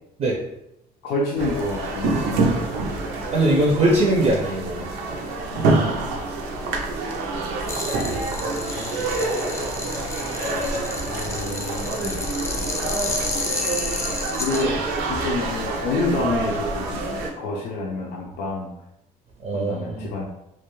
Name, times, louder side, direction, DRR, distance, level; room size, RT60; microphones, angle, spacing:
voice 1, 1.0-2.5 5.5-6.2 8.8-9.1 11.1-12.2 14.4-14.8 15.1-18.7 19.5-20.2, left 2 dB, 85° left, -2 dB, 0.5 m, -28 dB
sound 1, 1.4-17.3, right 3 dB, 85° right, 0.5 m, -27 dB
voice 2, 3.3-4.9 19.4-20.1, right 1 dB, 40° right, -2 dB, 0.5 m, -21 dB
sound 2, 7.7-14.6, left 3 dB, 15° left, 0.3 m, -31 dB
2.4 x 2.2 x 2.9 m, 0.84 s
cardioid pair, 110°, 17 cm